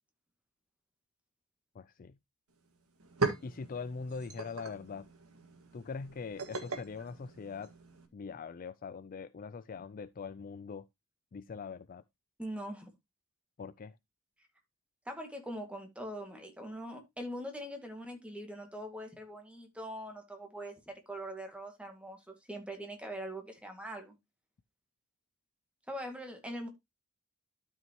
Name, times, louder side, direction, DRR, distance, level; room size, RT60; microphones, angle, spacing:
voice 1, 1.7-2.2 3.4-5.1 5.7-7.7 8.1-10.9 11.3-12.0 13.6-13.9, left 5 dB, 40° left, 0.4 m, -42 dB
sound 1, 2.5-2.6 2.9-8.1, right 3 dB, 80° right, 1.9 m, -39 dB
voice 2, 12.4-12.9 15.1-24.2 25.9-26.7, equal, 5° right, 2.0 m, -42 dB
12.5 x 5.6 x 2.9 m
head